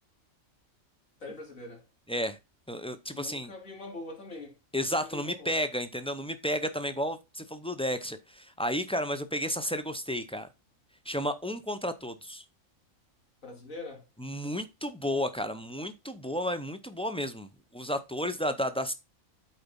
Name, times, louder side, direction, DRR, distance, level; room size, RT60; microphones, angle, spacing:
voice 1, 1.2-1.9 3.1-5.6 13.4-14.1, left 2 dB, 70° left, 3.1 m, -43 dB
voice 2, 2.7-3.5 4.7-10.5 11.1-12.4 14.2-18.9, equal, 10° left, 0.3 m, -32 dB
8.7 x 4.0 x 5.3 m
omnidirectional pair, 1.4 m